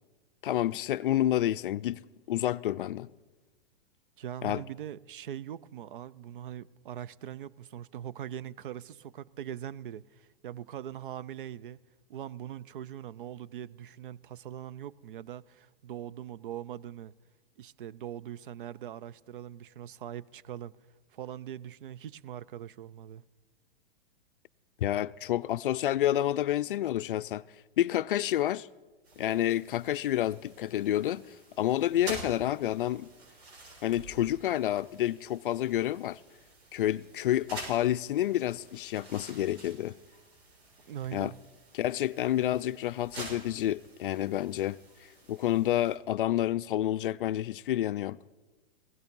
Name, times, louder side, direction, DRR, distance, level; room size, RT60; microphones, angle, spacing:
voice 1, 0.4-3.1 4.4-4.6 24.8-27.4 27.8-28.7 29.2-33.1 33.8-36.2 36.7-40.0 41.1-41.3 41.7-44.8 45.3-48.2, left 13 dB, 60° left, 0.4 m, -29 dB
voice 2, 4.2-11.8 12.1-17.1 17.6-20.8 21.1-23.2 40.9-41.4, right 10 dB, 55° right, 0.5 m, -41 dB
sound 1, 29.0-46.0, right 3 dB, 85° right, 6.2 m, -49 dB
17.0 x 15.5 x 5.3 m
supercardioid pair, 175°, 31 cm